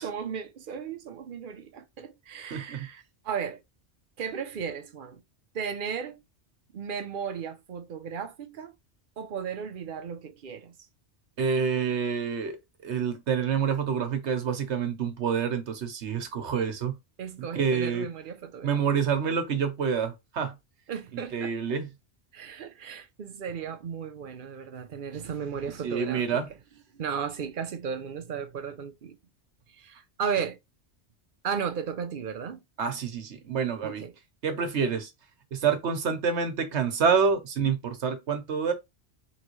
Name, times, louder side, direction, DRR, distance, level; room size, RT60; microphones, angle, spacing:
voice 1, 0.0-3.6 4.2-5.2 5.5-6.2 6.7-8.8 9.2-10.7 17.2-18.8 20.9-21.5 22.3-26.4 26.9-29.2 29.7-30.6 31.4-32.6 33.8-34.1, right 7 dB, 55° right, 0.7 m, -35 dB
voice 2, 2.5-2.9 11.4-17.0 17.4-18.1 18.6-20.5 21.1-21.9 25.8-26.5 32.8-34.0 34.4-35.1 35.5-38.7, right 6 dB, 75° right, 1.2 m, -27 dB
3.8 x 3.1 x 3.0 m
omnidirectional pair, 1.2 m